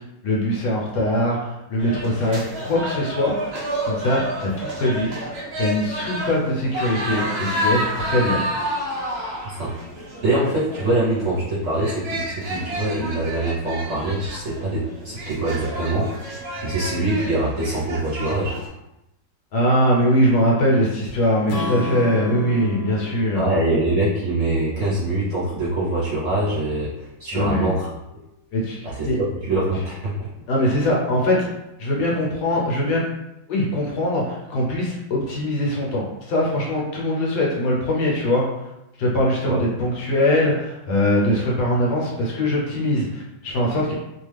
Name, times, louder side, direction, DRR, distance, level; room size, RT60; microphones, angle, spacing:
voice 1, 0.2-3.4 3.9-5.1 5.6-8.4 19.5-23.4 27.3-27.7 28.5-28.8 29.0-29.2 30.5-31.5 31.8-33.0 33.5-38.4 39.0-43.9, left 1 dB, 70° left, -3 dB, 1.2 m, -22 dB
sound 1, 1.8-18.7, right 1 dB, 85° right, 0.5 m, -30 dB
voice 2, 10.2-18.5 23.3-27.9 28.8-30.3 39.5-39.6, right 2 dB, 55° right, -8 dB, 1.0 m, -24 dB
Strum, 21.5-25.7, left 2 dB, 90° left, 0.7 m, -32 dB
3.0 x 2.2 x 3.3 m, 0.92 s
omnidirectional pair, 2.0 m